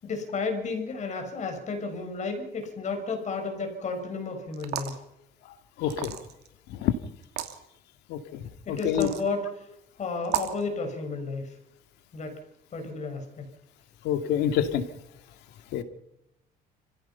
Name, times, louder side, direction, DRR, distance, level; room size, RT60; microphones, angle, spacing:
voice 1, 0.0-5.0 8.7-9.7 10.0-11.5 12.1-12.4 12.7-13.4, left 4 dB, 45° left, 5 dB, 6.5 m, -32 dB
sound 1, 4.5-5.0 5.9-6.5 7.2-7.5 8.8-9.3 10.2-10.6, right 11 dB, 75° right, 2.6 m, -32 dB
voice 2, 5.8-6.1 6.7-6.9 8.1-8.2 8.7-9.1 14.0-14.8 15.7-15.8, left 10 dB, 85° left, 8 dB, 2.5 m, -26 dB
29.0 x 16.5 x 5.8 m, 0.82 s
cardioid pair, 110°, 17 cm